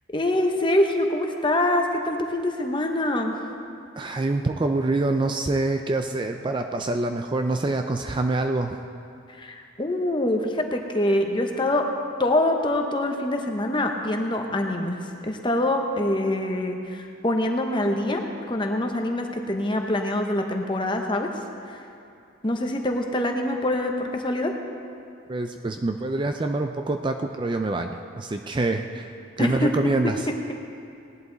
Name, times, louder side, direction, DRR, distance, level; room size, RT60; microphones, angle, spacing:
voice 1, 0.1-3.3 9.4-11.9 12.2-21.3 21.7-21.8 22.4-24.5 29.4-29.7 30.0-30.1, left 1 dB, 25° left, 3 dB, 0.9 m, -25 dB
voice 2, 4.0-8.8 25.3-29.1 29.4-30.2, right 2 dB, 25° right, 5 dB, 0.4 m, -26 dB
18.0 x 11.0 x 4.0 m, 2.5 s
head